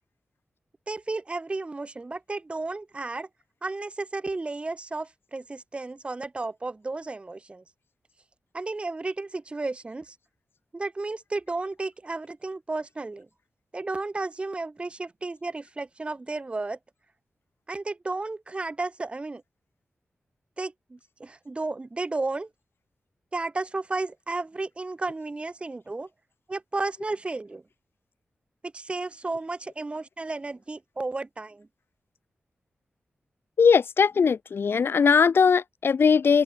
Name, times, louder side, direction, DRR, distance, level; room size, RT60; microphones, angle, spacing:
voice 1, 0.9-3.3 3.6-7.6 8.5-10.2 10.7-13.3 13.7-16.8 17.7-19.4 20.6-22.5 23.3-26.1 26.5-27.6 28.6-31.7, right 3 dB, 30° right, 1.4 m, -33 dB
voice 2, 33.6-36.4, left 6 dB, 70° left, 2.2 m, -20 dB
open air
wide cardioid pair, 120°, 4 cm